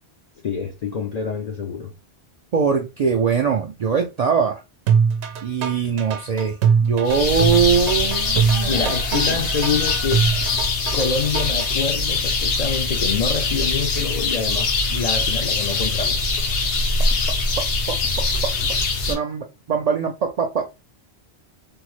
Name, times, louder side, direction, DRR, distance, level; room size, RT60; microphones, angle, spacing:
voice 1, 0.4-1.9 8.7-10.2 10.9-16.2, left 5 dB, 55° left, 0.5 m, -26 dB
voice 2, 2.5-4.6 5.4-9.4 17.6-18.5 19.1-20.7, right 6 dB, 60° right, 0.4 m, -22 dB
sound 1, 4.9-11.7, right 6 dB, 90° right, 0.9 m, -22 dB
sound 2, 7.1-19.1, left 3 dB, 80° left, 1.1 m, -22 dB
3.5 x 2.0 x 3.0 m
omnidirectional pair, 1.1 m